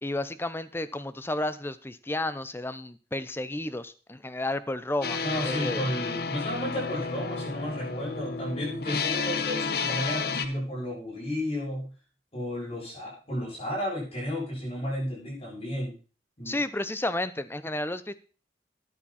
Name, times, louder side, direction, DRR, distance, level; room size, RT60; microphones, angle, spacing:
voice 1, 0.0-5.2 5.4-5.8 16.5-18.1, left 1 dB, 15° left, 13 dB, 0.7 m, -32 dB
sound 1, 5.0-10.5, left 5 dB, 60° left, 1.1 m, -31 dB
voice 2, 5.2-11.9 12.3-15.9 16.4-16.6, equal, 35° left, -5 dB, 7.5 m, -33 dB
13.5 x 10.0 x 4.3 m, 0.36 s
head